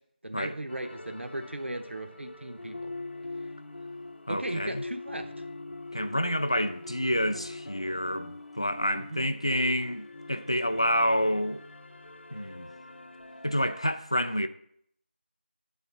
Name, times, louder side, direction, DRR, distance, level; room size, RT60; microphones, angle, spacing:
voice 1, 0.2-2.9 4.3-5.3 9.1-9.2, right 1 dB, 85° right, 0.8 m, -37 dB
sound 1, 0.7-13.9, left 2 dB, 70° left, 0.7 m, -43 dB
voice 2, 4.3-4.8 5.9-11.6 12.3-12.7 13.4-14.5, equal, 30° left, 0.3 m, -28 dB
8.1 x 4.1 x 6.8 m
figure-of-eight pair, 180°, 6 cm